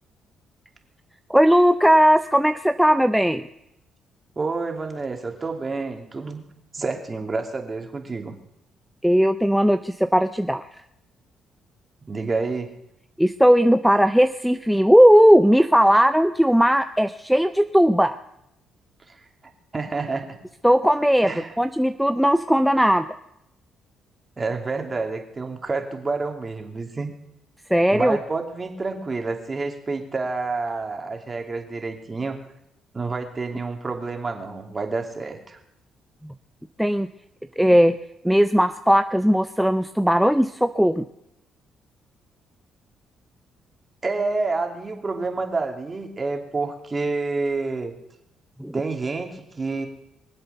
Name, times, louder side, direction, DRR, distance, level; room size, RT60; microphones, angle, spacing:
voice 1, 1.3-3.4 9.0-10.6 13.2-18.2 20.6-23.0 27.7-28.2 36.8-37.1 37.6-37.9 38.2-41.0 48.6-48.7, equal, ahead, 9 dB, 0.6 m, -17 dB
voice 2, 4.4-6.4 6.7-8.3 12.1-12.7 19.1-19.2 19.7-20.3 21.2-21.5 24.4-27.1 27.9-32.4 32.9-35.6 44.0-47.9 48.7-49.9, right 3 dB, 30° right, 3 dB, 2.7 m, -28 dB
23.0 x 7.8 x 7.0 m, 0.81 s
cardioid pair, 80°, 0 cm